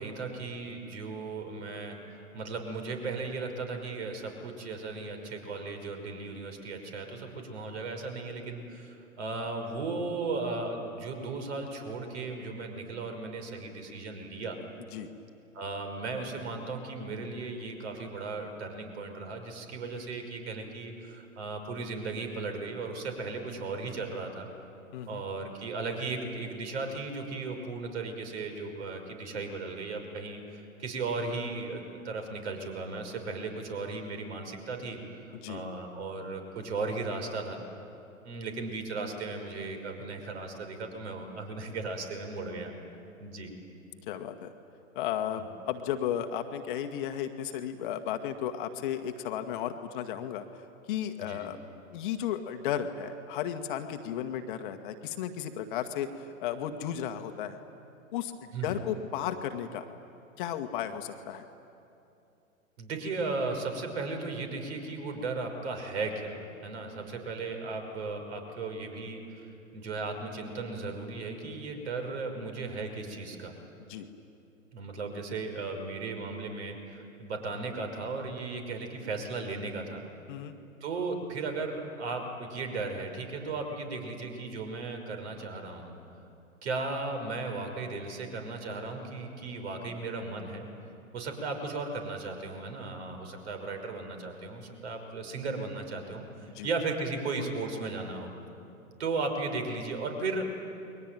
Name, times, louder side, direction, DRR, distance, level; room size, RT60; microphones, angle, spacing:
voice 1, 0.0-14.6 15.5-24.5 25.1-35.0 35.3-37.6 38.2-42.7 43.2-43.5 45.4-45.5 51.2-51.4 58.5-58.8 62.8-69.5 69.7-73.5 74.7-80.1 80.8-86.0 86.6-90.7 91.1-98.3 99.0-100.4, right 3 dB, 50° right, 5 dB, 5.7 m, -36 dB
voice 2, 44.1-44.5 44.9-50.4 50.9-51.6 51.9-57.6 58.1-59.9 60.4-61.4 73.9-74.1 80.3-80.5 96.5-96.7, left 9 dB, 35° left, 7 dB, 1.6 m, -34 dB
29.5 x 22.5 x 9.1 m, 2.7 s
figure-of-eight pair, 115°, 41 cm